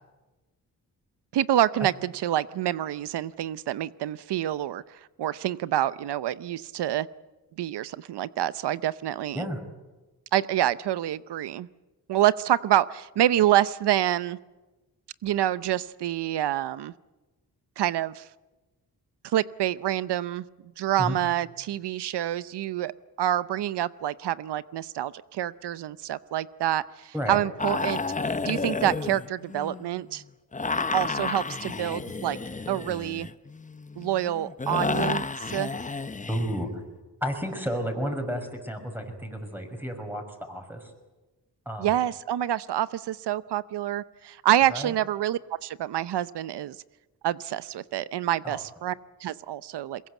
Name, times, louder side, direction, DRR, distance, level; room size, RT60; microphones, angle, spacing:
voice 1, 1.3-4.8 5.2-7.1 7.6-9.5 10.3-11.7 12.1-14.4 15.2-16.9 17.8-18.2 19.2-20.4 20.8-22.9 23.2-28.0 28.5-30.2 30.9-32.4 32.7-33.3 34.0-35.3 35.5-35.7 41.8-46.8 47.2-48.9 49.2-50.0, right 12 dB, 85° right, 17 dB, 0.7 m, -27 dB
sound 1, 27.6-30.0 30.5-36.6, left 4 dB, 20° left, 0.8 m, -31 dB
voice 2, 36.3-36.8 37.2-40.9 41.7-42.0 44.7-45.0 48.4-48.6, equal, 5° right, 4 dB, 5.9 m, -32 dB
22.5 x 21.5 x 8.2 m, 1.1 s
cardioid pair, 80°, 39 cm